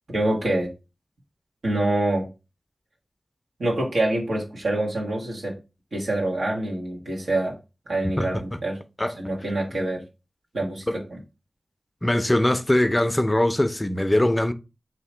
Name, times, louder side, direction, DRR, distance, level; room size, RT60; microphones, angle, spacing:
voice 1, 0.1-0.7 1.6-2.3 3.6-5.5 5.9-7.5 7.9-8.8 9.1-10.0 10.5-11.2, right 1 dB, 90° right, 1.3 m, -26 dB
voice 2, 12.0-14.5, left 1 dB, 20° left, 0.5 m, -21 dB
3.1 x 2.8 x 4.4 m
cardioid pair, 50°, 0 cm